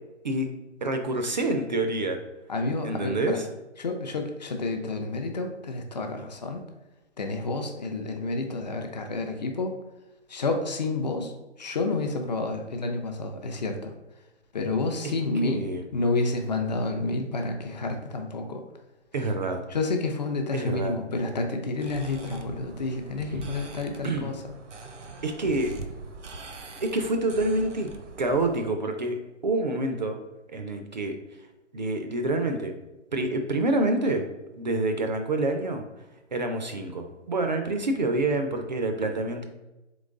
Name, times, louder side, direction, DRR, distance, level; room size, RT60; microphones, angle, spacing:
voice 1, 0.8-2.2 2.8-3.5 15.4-15.8 19.1-19.6 20.5-20.9 24.0-24.3 25.2-25.8 26.8-27.9 28.2-30.2 30.5-31.2 31.7-32.8 33.1-34.3 34.5-35.8 36.3-39.4, right 2 dB, 40° right, 5 dB, 0.4 m, -27 dB
voice 2, 2.5-3.4 3.8-6.6 7.2-9.8 10.3-11.3 11.6-13.9 14.5-18.6 19.7-24.4, left 3 dB, 35° left, 4 dB, 0.5 m, -29 dB
sound 1, 21.8-28.6, right 4 dB, 80° right, 0.7 m, -42 dB
3.8 x 3.0 x 3.6 m, 1.0 s
figure-of-eight pair, 145°, 36 cm